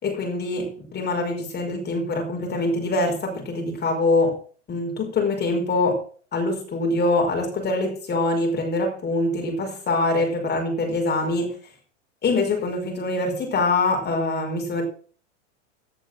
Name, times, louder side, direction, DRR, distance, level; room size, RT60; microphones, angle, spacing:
voice 1, 0.0-4.4 4.7-6.0 6.3-11.5 12.2-14.8, left 2 dB, 30° left, 2 dB, 5.1 m, -24 dB
16.0 x 6.9 x 6.4 m, 0.44 s
hypercardioid pair, 100°, 37 cm